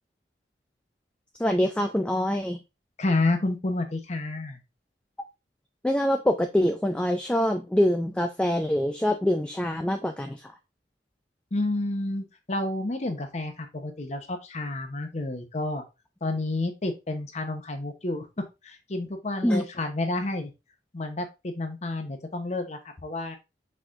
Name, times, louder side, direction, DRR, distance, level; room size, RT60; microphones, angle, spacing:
voice 1, 1.4-2.6 5.2-5.3 5.8-10.5 19.4-19.6, left 1 dB, 5° left, 5 dB, 0.3 m, -25 dB
voice 2, 3.0-4.6 11.5-15.8 16.2-20.5 20.9-23.4, left 2 dB, 40° left, 6 dB, 0.8 m, -30 dB
4.3 x 4.2 x 2.5 m, 0.25 s
head